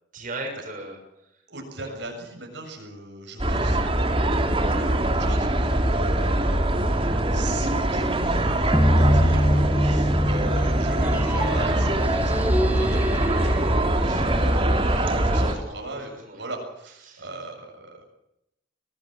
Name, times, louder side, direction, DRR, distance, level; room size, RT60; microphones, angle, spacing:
voice 1, 0.1-1.4 1.8-1.9 14.0-14.4 14.9-16.4 17.0-17.3, right 1 dB, 45° right, 1 dB, 6.8 m, -38 dB
voice 2, 1.5-18.0, right 2 dB, 70° right, 1 dB, 7.3 m, -38 dB
sound 1, 3.4-15.5, right 1 dB, 30° right, 3.2 m, -23 dB
sound 2, 8.7-11.8, equal, 10° left, 1.7 m, -22 dB
sound 3, 11.0-15.0, equal, 10° right, 3.1 m, -31 dB
24.5 x 18.5 x 7.6 m, 0.85 s
head